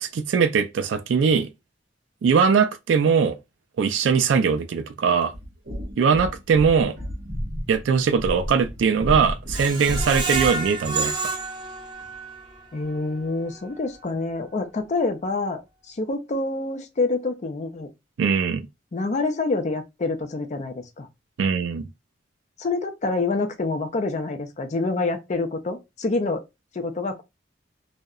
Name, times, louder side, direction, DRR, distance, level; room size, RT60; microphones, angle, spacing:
voice 1, 0.0-1.5 2.2-3.4 3.8-5.3 6.0-6.9 7.7-11.2 18.2-18.6 21.4-21.9, right 6 dB, 80° right, 0.3 m, -21 dB
sound 1, 5.3-10.7, equal, 55° right, 0.8 m, -32 dB
Screech, 9.5-12.5 12.9-13.0 13.4-13.5, right 3 dB, 25° right, 0.6 m, -29 dB
voice 2, 12.7-17.9 18.9-21.1 22.6-26.4 26.7-27.2, left 3 dB, 40° left, 0.4 m, -27 dB
2.7 x 2.0 x 2.3 m
head